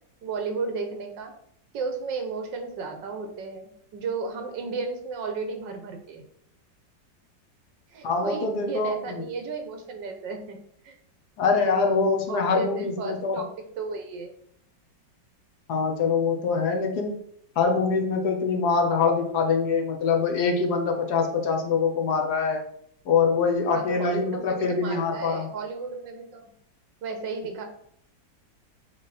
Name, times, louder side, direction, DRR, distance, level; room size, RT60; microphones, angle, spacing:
voice 1, 0.2-1.3 1.7-6.2 7.9-10.6 10.8-11.0 11.4-12.0 12.3-14.3 23.7-26.5 27.0-27.6, right 4 dB, 75° right, 5 dB, 1.7 m, -34 dB
voice 2, 8.0-9.2 11.4-13.4 15.7-17.2 17.6-22.6 23.1-25.5, left 5 dB, 60° left, 3 dB, 1.4 m, -24 dB
7.1 x 3.5 x 4.2 m, 0.69 s
omnidirectional pair, 2.0 m